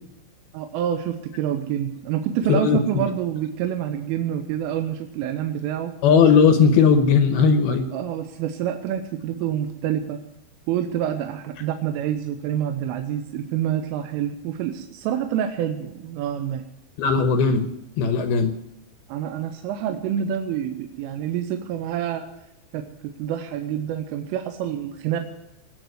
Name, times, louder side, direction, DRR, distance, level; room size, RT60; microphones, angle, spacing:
voice 1, 0.5-5.9 7.9-10.2 10.7-16.6 19.1-22.3 22.7-25.2, right 10 dB, 85° right, 7 dB, 3.5 m, -27 dB
voice 2, 2.5-3.0 6.0-7.9 17.0-17.7 18.0-18.5, left 6 dB, 75° left, 8 dB, 2.3 m, -17 dB
21.0 x 8.2 x 7.9 m, 0.89 s
omnidirectional pair, 5.7 m